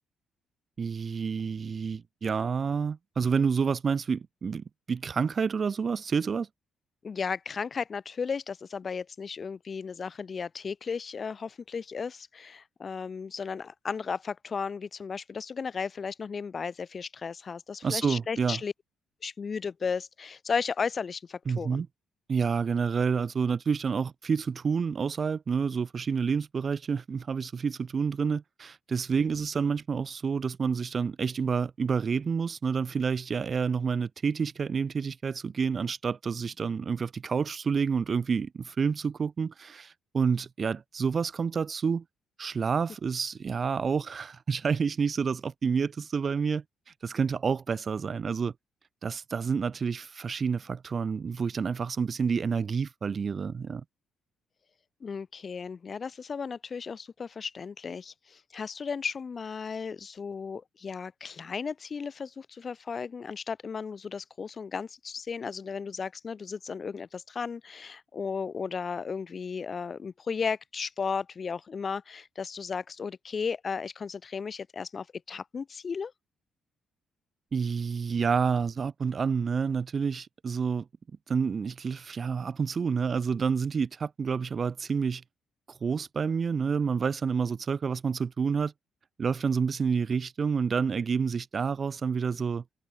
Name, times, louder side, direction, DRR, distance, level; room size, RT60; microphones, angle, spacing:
voice 1, 0.8-6.5 17.8-18.6 21.5-21.9 22.3-42.0 42.4-48.5 49.0-53.8 77.5-80.9 81.3-85.2 85.7-88.7 89.2-92.6, right 6 dB, 35° right, 0.9 m, -29 dB
voice 2, 7.0-18.7 19.2-21.8 55.0-76.1, left 5 dB, 35° left, 2.8 m, -35 dB
cardioid pair, 135°, 0 cm